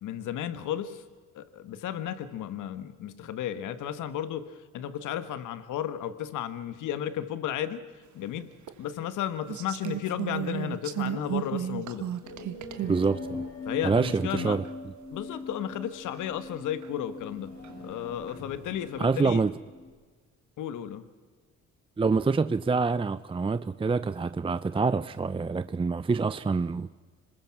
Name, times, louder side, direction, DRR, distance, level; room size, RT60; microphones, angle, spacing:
voice 1, 0.0-1.0 1.3-7.8 8.1-8.5 8.8-12.0 13.6-14.6 15.1-17.5 17.8-19.4 20.6-21.0, left 10 dB, 85° left, 1.4 m, -33 dB
sound 1, 8.7-8.8 9.5-13.0 13.8-13.9 14.6-14.7 15.3-15.4 16.1-16.2 16.8-16.9 17.6-18.4 18.9-19.2, right 11 dB, 70° right, 1.6 m, -34 dB
sound 2, 12.2-19.9, left 3 dB, 50° left, 7.5 m, -41 dB
voice 2, 12.9-13.5 13.8-14.6 19.0-19.5 22.0-26.9, right 4 dB, 20° right, 0.6 m, -26 dB
26.5 x 20.5 x 6.0 m
cardioid pair, 90°, 30 cm